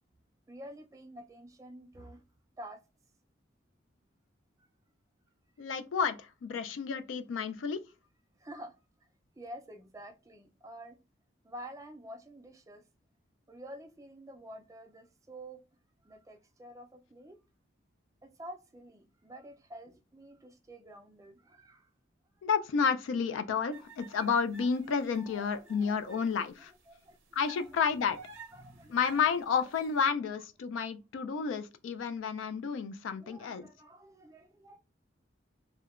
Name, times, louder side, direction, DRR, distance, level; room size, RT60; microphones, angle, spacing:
voice 1, 0.5-2.2 2.6-2.8 8.4-8.7 9.4-11.0 11.4-12.8 13.5-15.6 16.0-17.4 18.2-21.9 25.3-26.3 26.9-27.2 27.5-27.6 28.1-28.2 28.5-29.0 33.1-34.8, right 1 dB, 15° right, 0.3 m, -49 dB
voice 2, 5.6-7.8 22.4-26.7 27.4-28.2 28.9-33.7, left 6 dB, 75° left, 0.3 m, -31 dB
sound 1, 23.7-26.3 26.7-26.8 27.3-30.0, right 4 dB, 90° right, 0.6 m, -51 dB
2.7 x 2.1 x 2.3 m
head